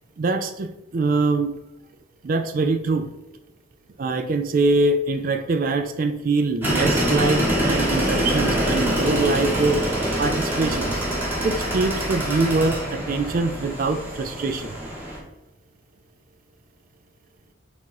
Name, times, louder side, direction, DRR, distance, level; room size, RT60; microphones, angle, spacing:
voice 1, 0.2-1.5 2.2-3.1 4.0-9.8 10.2-11.0 11.4-14.7, right 3 dB, 45° right, 9 dB, 0.3 m, -23 dB
sound 1, 6.6-15.2, right 1 dB, 10° right, 1.0 m, -24 dB
3.7 x 2.9 x 4.6 m, 0.87 s
head